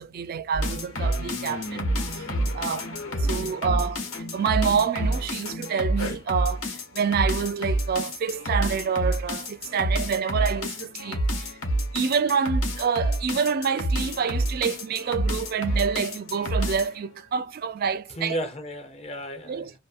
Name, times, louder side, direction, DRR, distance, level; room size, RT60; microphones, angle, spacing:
voice 1, 0.0-2.3 2.5-2.9 3.2-11.6 11.9-18.4 19.5-19.7, right 6 dB, 45° right, 0.3 m, -27 dB
sound 1, 0.5-17.0, equal, 85° left, 1.0 m, -28 dB
voice 2, 3.0-3.6 18.1-19.7, equal, 30° left, 0.5 m, -35 dB
2.5 x 2.4 x 2.4 m
head